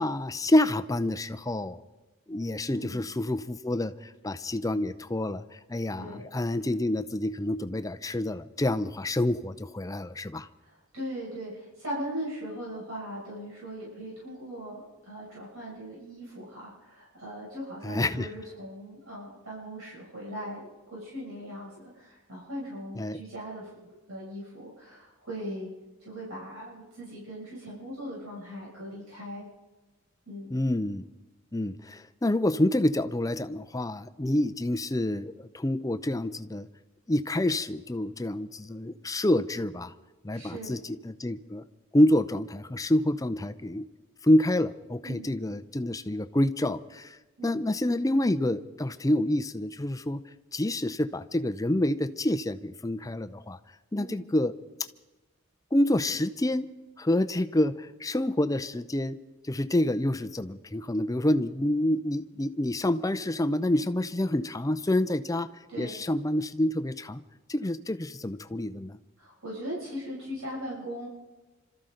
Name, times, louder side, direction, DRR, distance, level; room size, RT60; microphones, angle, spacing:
voice 1, 0.0-1.8 2.3-10.5 17.8-18.3 23.0-23.2 30.5-31.1 31.5-36.7 37.1-39.9 40.2-41.6 41.9-43.9 44.2-47.2 47.4-50.2 50.5-53.6 53.9-54.5 55.7-56.7 57.0-59.2 59.5-65.5 65.8-67.2 67.5-69.0, left 1 dB, 15° left, 10 dB, 0.6 m, -27 dB
voice 2, 2.7-3.0 6.0-6.2 10.6-23.7 24.1-25.7 26.0-29.4 30.3-30.6 40.3-40.7 45.0-45.2 47.4-47.6 53.9-54.2 65.7-66.0 69.2-71.1, equal, 85° right, -6 dB, 6.8 m, -39 dB
27.0 x 13.5 x 3.9 m, 1.2 s
head